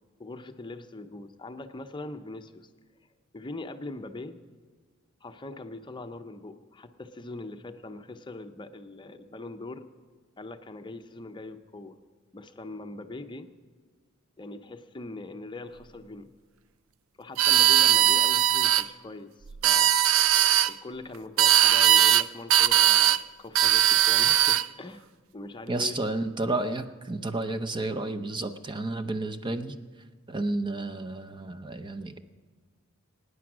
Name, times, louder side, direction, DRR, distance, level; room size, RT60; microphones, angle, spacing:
voice 1, 0.2-2.7 3.3-4.4 5.2-9.9 10.4-12.0 12.3-13.5 14.4-16.3 17.2-20.0 20.7-25.1 25.3-26.0, left 2 dB, 25° left, 8 dB, 0.7 m, -41 dB
sound 1, 17.4-18.8 19.5-20.7 21.4-22.2 22.5-23.2 23.5-24.7, right 11 dB, 70° right, 0.4 m, -20 dB
voice 2, 25.7-29.7 30.3-32.2, right 2 dB, 25° right, 8 dB, 0.7 m, -31 dB
23.5 x 9.6 x 6.1 m, 1.5 s
head